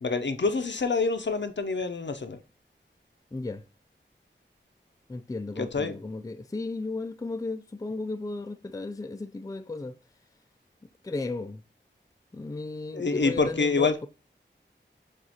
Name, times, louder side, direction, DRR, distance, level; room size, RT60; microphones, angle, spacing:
voice 1, 0.0-2.4 5.6-5.9 12.9-13.9, left 4 dB, 70° left, 0.6 m, -26 dB
voice 2, 3.3-3.6 5.1-9.9 11.0-11.6 12.3-14.1, left 3 dB, 20° left, 0.3 m, -35 dB
6.3 x 2.4 x 2.8 m
wide cardioid pair, 45°, 19 cm